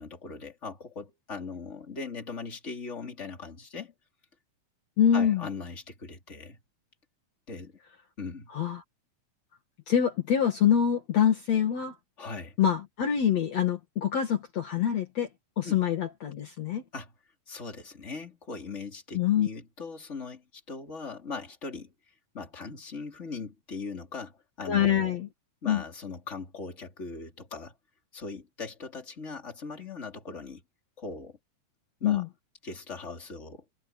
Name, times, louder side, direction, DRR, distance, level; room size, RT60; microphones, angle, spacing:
voice 1, 0.0-3.9 5.1-6.6 7.5-7.8 8.2-8.5 12.2-12.6 15.6-15.8 16.9-17.1 17.5-21.9 22.3-25.2 25.6-27.8 28.1-30.6 31.0-31.4 32.0-32.2 32.6-33.6, left 4 dB, 20° left, 3.7 m, -40 dB
voice 2, 5.0-5.4 8.5-8.8 9.9-11.9 12.6-15.3 15.6-16.8 19.1-19.5 24.7-25.3 25.7-25.8 32.0-32.3, left 9 dB, 55° left, 3.0 m, -25 dB
omnidirectional pair, 3.8 m